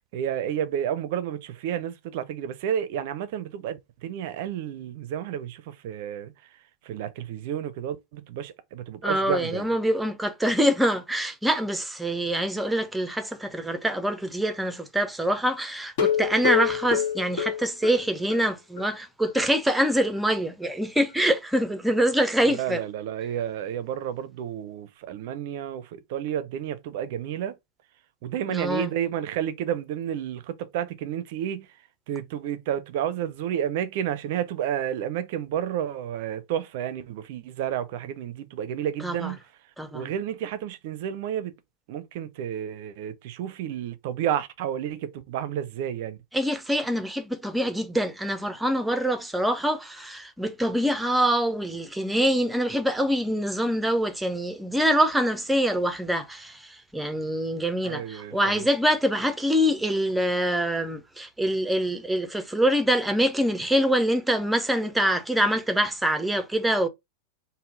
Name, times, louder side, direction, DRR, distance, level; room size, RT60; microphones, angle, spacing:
voice 1, 0.1-9.7 22.4-27.6 28.2-39.4 39.9-41.5 41.9-46.2 57.8-58.7, right 10 dB, 50° right, 0.5 m, -31 dB
voice 2, 9.0-22.8 28.5-28.9 39.0-39.3 39.8-40.0 46.3-66.9, equal, 5° right, 0.6 m, -25 dB
sound 1, 15.9-18.5 18.8-18.9 19.2-19.3 19.7-19.8, left 8 dB, 50° left, 0.9 m, -26 dB
3.6 x 2.1 x 3.7 m
figure-of-eight pair, 90°, 0 cm